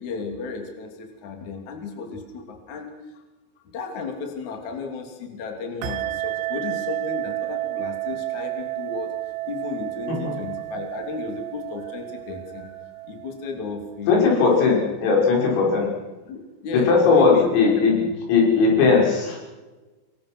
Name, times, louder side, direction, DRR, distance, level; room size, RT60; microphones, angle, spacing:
voice 1, 0.0-3.2 3.7-9.1 9.5-12.8 13.0-15.0 16.2-17.8, left 4 dB, 40° left, 3 dB, 3.8 m, -34 dB
sound 1, 5.8-14.0, right 16 dB, 90° right, 3.9 m, -31 dB
voice 2, 14.1-15.9 16.9-18.0 18.3-19.4, left 4 dB, 85° left, -1 dB, 8.4 m, -18 dB
26.0 x 23.5 x 6.2 m, 1.2 s
omnidirectional pair, 5.9 m